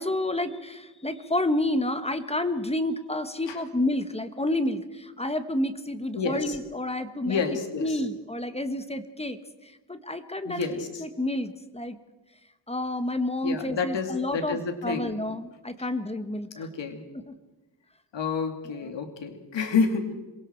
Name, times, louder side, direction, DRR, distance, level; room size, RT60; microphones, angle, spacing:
voice 1, 0.0-7.4 7.8-12.0 12.7-16.7 17.3-17.4 18.8-18.9, left 1 dB, 15° left, 9 dB, 1.2 m, -30 dB
voice 2, 6.2-6.6 7.2-8.0 10.4-11.0 13.4-15.2 16.5-17.0 18.1-20.1, left 5 dB, 85° left, 6 dB, 2.6 m, -29 dB
27.0 x 22.5 x 4.5 m, 1.1 s
wide cardioid pair, 145°, 42 cm